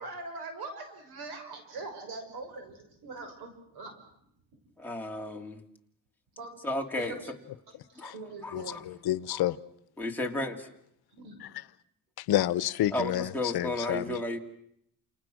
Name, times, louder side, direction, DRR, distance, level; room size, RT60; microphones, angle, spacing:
voice 1, 0.0-3.9 6.4-6.6 7.0-7.3 7.9-8.9 11.1-11.4, right 3 dB, 90° right, 6.3 m, -42 dB
voice 2, 4.8-5.6 6.6-7.1 8.0-8.1 8.4-8.8 9.3-9.4 10.0-10.7 12.9-14.4, left 2 dB, 5° left, 2.9 m, -33 dB
voice 3, 8.5-9.6 12.2-14.2, left 13 dB, 80° left, 1.0 m, -29 dB
29.0 x 28.5 x 6.3 m
cardioid pair, 135°, 37 cm